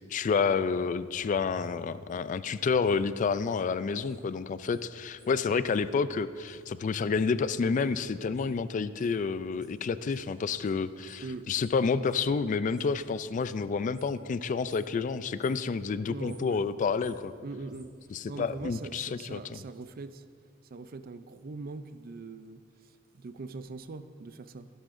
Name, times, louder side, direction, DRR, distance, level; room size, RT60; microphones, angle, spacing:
voice 1, 0.1-17.3 18.1-19.6, left 5 dB, 40° left, 14 dB, 0.3 m, -29 dB
sound 1, 0.8-4.2 4.5-13.0 13.3-14.3 14.6-15.0 15.2-15.7 16.1-18.7 19.0-19.1, equal, 5° right, 2.0 m, -56 dB
voice 2, 16.0-16.6 17.4-17.9 18.3-20.2 20.6-24.7, right 3 dB, 45° right, 11 dB, 0.4 m, -42 dB
15.0 x 11.0 x 2.6 m, 2.1 s
head